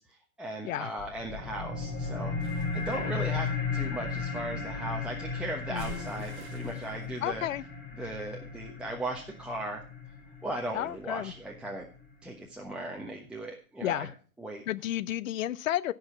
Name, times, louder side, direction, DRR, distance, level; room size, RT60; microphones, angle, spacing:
voice 1, 0.4-7.4 8.0-9.8 10.4-11.9 12.2-14.1 14.4-14.6, right 1 dB, ahead, -1 dB, 1.1 m, -37 dB
sound 1, 1.0-12.0, left 4 dB, 20° left, 4.7 m, -36 dB
sound 2, 2.4-4.3 5.7-7.0, right 7 dB, 30° right, 2.7 m, -47 dB
voice 2, 5.7-6.1 7.2-7.6 10.7-11.3 13.8-14.1 14.7-15.9, left 12 dB, 65° left, 17 dB, 0.7 m, -32 dB
15.5 x 5.2 x 5.8 m, 0.41 s
hypercardioid pair, 125°, 42 cm